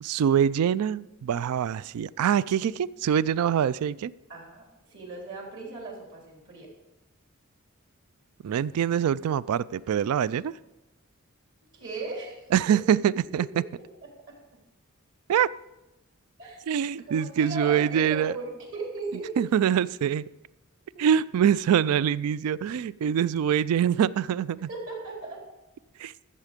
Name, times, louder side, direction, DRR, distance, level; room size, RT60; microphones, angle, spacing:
voice 1, 0.0-4.1 8.4-10.5 12.5-13.5 15.3-15.5 16.7-18.4 19.4-20.2 21.0-24.7 26.0-26.1, right 9 dB, 80° right, 20 dB, 0.3 m, -24 dB
voice 2, 4.3-4.6 4.9-6.7 11.7-12.8 13.3-13.6 14.3-14.4 16.4-16.6 17.1-19.4 20.9-21.1 24.7-25.4, right 3 dB, 60° right, -1 dB, 3.5 m, -37 dB
14.0 x 7.3 x 5.1 m, 1.0 s
head